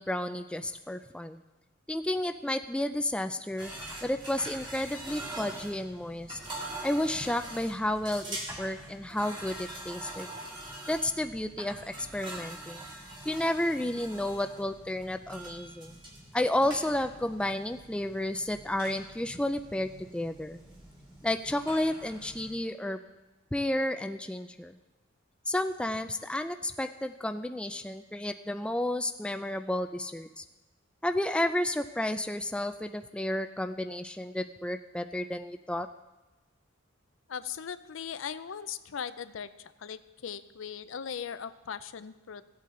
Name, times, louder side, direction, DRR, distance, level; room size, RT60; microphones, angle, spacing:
voice 1, 0.0-1.4 1.9-3.7 4.0-6.4 6.8-10.3 10.9-12.8 13.3-16.0 16.3-20.6 21.2-23.0 23.5-24.8 25.5-30.4 31.0-35.9, left 1 dB, 5° left, 8 dB, 0.3 m, -31 dB
sound 1, 3.6-22.6, right 1 dB, 25° right, 1.9 m, -44 dB
voice 2, 37.3-42.4, left 7 dB, 75° left, 14 dB, 0.5 m, -39 dB
16.5 x 8.4 x 3.8 m, 1.1 s
head